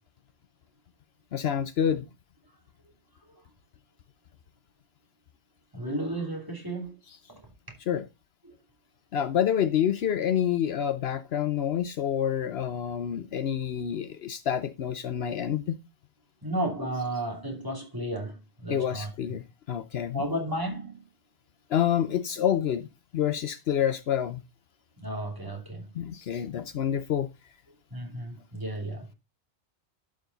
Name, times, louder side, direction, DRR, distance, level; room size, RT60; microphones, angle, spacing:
voice 1, 1.3-2.0 7.9-8.1 9.1-15.8 18.7-20.2 21.7-22.9 23.1-24.4 25.9-27.3, left 9 dB, 70° left, 0.9 m, -28 dB
voice 2, 5.7-7.0 7.3-7.4 8.4-8.5 16.4-19.1 20.1-21.0 25.0-25.9 27.9-29.1, right 1 dB, 20° right, 2.7 m, -33 dB
11.5 x 4.9 x 3.9 m
omnidirectional pair, 1.1 m